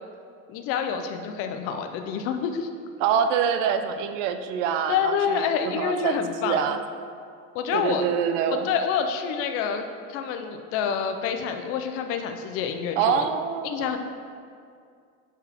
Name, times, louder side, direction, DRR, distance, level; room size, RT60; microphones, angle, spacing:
voice 1, 0.5-2.7 4.9-6.7 7.5-8.0 8.5-13.2 13.6-14.0, left 7 dB, 40° left, 6 dB, 0.5 m, -27 dB
voice 2, 3.0-6.8 7.7-8.7 13.0-14.0, right 7 dB, 80° right, 9 dB, 0.7 m, -25 dB
10.5 x 4.7 x 3.5 m, 2.3 s
cardioid pair, 175°, 37 cm